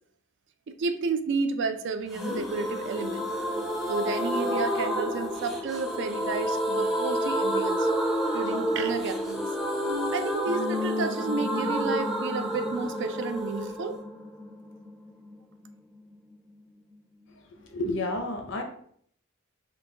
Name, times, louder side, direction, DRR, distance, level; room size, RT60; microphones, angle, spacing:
voice 1, 0.7-3.3 3.9-7.9 8.3-9.5 10.1-14.0, right 4 dB, 60° right, 9 dB, 0.4 m, -31 dB
sound 1, 2.1-15.7 16.0-16.1 16.3-16.4, equal, ahead, 0.5 m, -29 dB
voice 2, 17.6-18.6, left 2 dB, 65° left, 3 dB, 0.5 m, -30 dB
3.9 x 2.3 x 3.7 m, 0.62 s
head